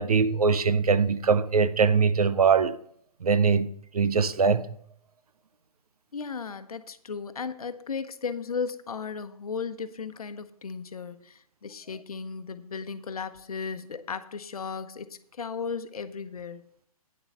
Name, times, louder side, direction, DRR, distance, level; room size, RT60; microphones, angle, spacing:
voice 1, 0.0-2.8 3.2-4.7, right 5 dB, 75° right, 0.7 m, -22 dB
voice 2, 6.1-16.6, left 5 dB, 70° left, 0.9 m, -35 dB
9.6 x 7.0 x 5.5 m
figure-of-eight pair, 130°, 19 cm